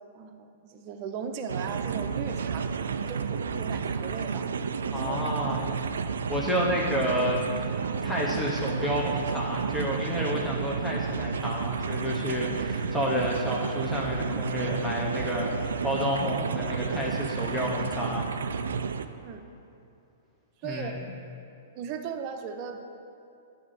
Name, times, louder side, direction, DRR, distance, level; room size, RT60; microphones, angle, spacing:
voice 1, 0.1-2.7 3.0-4.5 4.8-5.7 19.2-19.5 20.6-21.0 21.7-22.9, right 6 dB, 45° right, 6 dB, 0.8 m, -38 dB
sound 1, 1.5-19.1, right 6 dB, 75° right, 0.4 m, -31 dB
voice 2, 4.9-5.8 6.3-7.7 8.0-18.3 20.6-20.9, equal, 5° left, -5 dB, 1.0 m, -30 dB
9.8 x 3.8 x 6.7 m, 2.8 s
hypercardioid pair, 110°, 0 cm